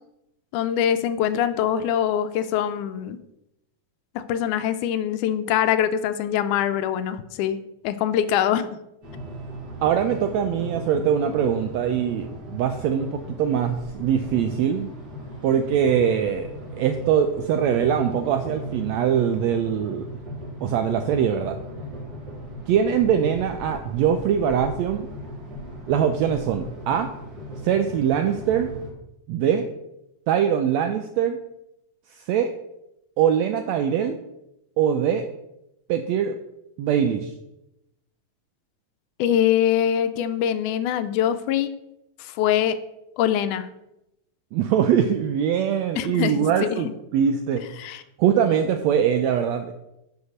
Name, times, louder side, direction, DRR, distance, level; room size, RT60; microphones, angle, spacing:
voice 1, 0.5-3.2 4.2-7.6 7.8-8.8 39.2-41.7 42.2-42.8 43.2-43.7 46.0-46.8 47.8-48.0, left 10 dB, 80° left, 11 dB, 2.0 m, -23 dB
sound 1, 9.0-28.9, equal, 30° right, 3.3 m, -37 dB
voice 2, 9.8-14.9 15.4-16.5 16.8-20.0 20.6-21.6 22.7-25.1 25.9-27.1 27.6-28.7 29.3-29.6 30.3-31.4 32.2-32.5 33.2-34.2 34.8-35.2 35.9-36.3 36.8-37.3 44.5-47.6 48.2-49.7, right 8 dB, 80° right, 7 dB, 1.5 m, -22 dB
9.5 x 4.7 x 6.4 m, 0.86 s
omnidirectional pair, 3.7 m